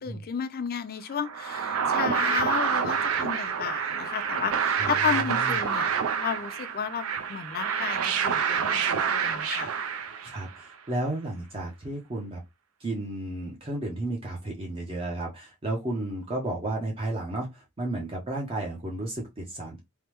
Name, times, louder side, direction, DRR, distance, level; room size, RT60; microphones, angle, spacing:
voice 1, 0.0-5.9 6.2-9.7, left 7 dB, 45° left, 0.4 m, -33 dB
sound 1, 1.2-10.6, right 7 dB, 70° right, 0.4 m, -27 dB
voice 2, 5.2-5.6 10.2-12.4 12.8-19.8, right 1 dB, 25° right, 0.6 m, -33 dB
3.3 x 2.1 x 2.9 m
head